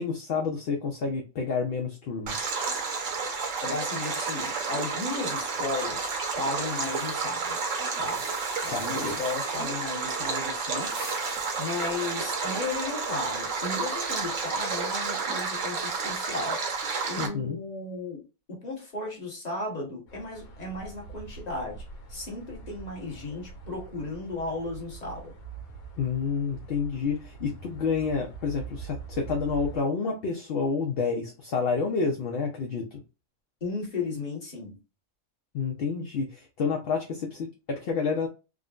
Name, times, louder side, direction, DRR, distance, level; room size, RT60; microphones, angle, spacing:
voice 1, 0.0-2.5 8.7-9.2 17.2-17.6 26.0-33.0 35.5-38.3, left 5 dB, 60° left, 0.6 m, -29 dB
Stream, 2.3-17.3, right 4 dB, 65° right, 1.1 m, -31 dB
voice 2, 3.6-7.6 8.0-8.2 8.6-11.0 11.6-16.6 17.1-18.2 18.5-21.8 22.1-25.3 33.6-34.8, left 3 dB, 30° left, 1.2 m, -35 dB
sound 1, 5.6-9.8 10.6-12.9, right 1 dB, 15° right, 0.3 m, -47 dB
sound 2, 20.1-29.8, right 5 dB, 85° left, 1.3 m, -44 dB
3.6 x 2.1 x 2.4 m
omnidirectional pair, 1.5 m